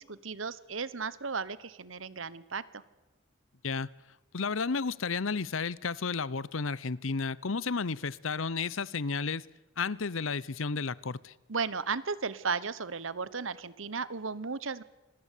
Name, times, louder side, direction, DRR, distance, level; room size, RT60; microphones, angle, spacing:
voice 1, 0.0-2.6 11.5-14.8, right 5 dB, 75° right, 18 dB, 1.2 m, -35 dB
voice 2, 4.3-9.5 9.8-11.3, left 4 dB, 75° left, 21 dB, 0.8 m, -32 dB
26.5 x 20.5 x 8.5 m, 1.0 s
head